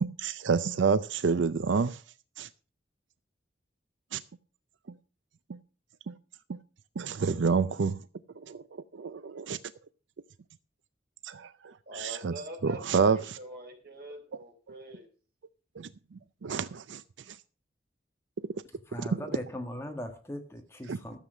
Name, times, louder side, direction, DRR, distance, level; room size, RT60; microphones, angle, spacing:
voice 1, 0.0-2.0 2.4-2.5 4.1-4.2 5.5-5.6 6.1-6.2 6.5-6.6 7.0-8.0 8.5-8.6 8.9-9.6 11.2-12.3 12.6-13.4 15.8-15.9 16.4-17.0 17.3-17.4 20.9-21.0, right 5 dB, 85° right, 0.5 m, -28 dB
voice 2, 11.9-12.8 13.1-15.1, right 1 dB, 55° right, 3.9 m, -44 dB
voice 3, 18.9-21.2, equal, 15° left, 1.5 m, -39 dB
13.0 x 7.5 x 6.1 m
head